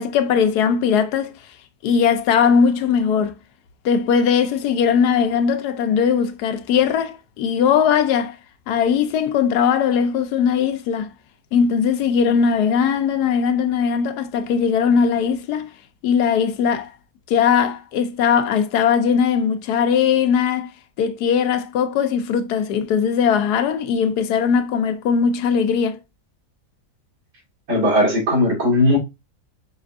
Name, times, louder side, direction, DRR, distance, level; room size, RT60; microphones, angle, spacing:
voice 1, 0.0-1.3 1.8-3.3 3.8-8.3 8.7-11.1 11.5-15.7 16.0-16.9 17.3-20.7 21.0-26.0, left 7 dB, 85° left, 1.2 m, -19 dB
voice 2, 27.7-29.0, left 1 dB, 85° right, 2.9 m, -17 dB
5.6 x 3.3 x 2.5 m
omnidirectional pair, 1.6 m